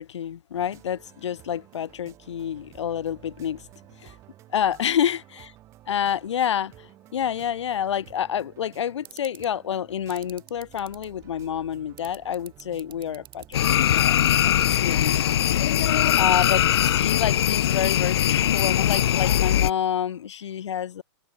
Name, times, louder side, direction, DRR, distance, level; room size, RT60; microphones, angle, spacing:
voice 1, 0.0-3.6 4.0-4.2 4.5-5.5 5.9-13.7 14.4-15.2 16.2-21.0, left 9 dB, 80° left, 1.9 m, -28 dB
sound 1, 0.5-19.7, right 14 dB, 20° right, 3.1 m, -52 dB
sound 2, 9.0-9.5 10.1-11.0 12.0-16.1 16.9-17.0 17.4-17.5 17.9-18.0 18.2-18.6 18.9-19.0, right 13 dB, 50° right, 6.5 m, -43 dB
sound 3, 13.5-19.7, left 11 dB, 60° left, 0.8 m, -21 dB
hypercardioid pair, 170°, 15 cm